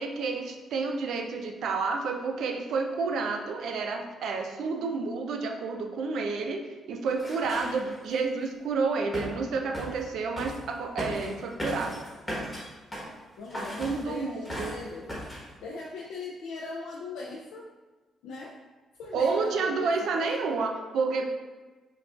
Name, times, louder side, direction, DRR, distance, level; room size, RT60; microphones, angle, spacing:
voice 1, 0.0-12.1 13.8-14.8 19.1-21.3, right 4 dB, 75° right, 4 dB, 0.4 m, -30 dB
sound 1, 7.2-8.1 9.1-9.4 9.7-10.1 10.4-10.6 11.0-13.1 13.5-14.1 14.4-14.8 15.1-15.5, equal, 15° left, 1.3 m, -37 dB
voice 2, 7.6-7.9 13.4-15.3 15.6-17.7 18.2-18.6 19.0-20.6, left 3 dB, 90° left, -2 dB, 0.3 m, -40 dB
5.6 x 2.3 x 2.4 m, 1.3 s
cardioid pair, 90°, 0 cm